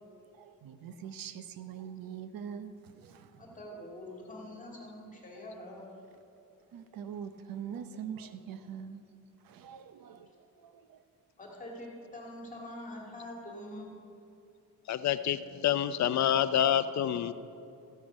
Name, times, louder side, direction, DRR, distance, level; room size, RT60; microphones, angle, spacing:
voice 1, 0.3-3.6 6.7-9.0 9.4-11.0, right 8 dB, 80° right, 11 dB, 0.8 m, -43 dB
voice 2, 3.4-5.9 11.4-14.0, left 1 dB, 25° left, -2 dB, 2.0 m, -45 dB
voice 3, 14.9-17.3, left 10 dB, 55° left, 13 dB, 0.5 m, -27 dB
14.0 x 12.0 x 5.3 m, 2.7 s
cardioid pair, 155°, 34 cm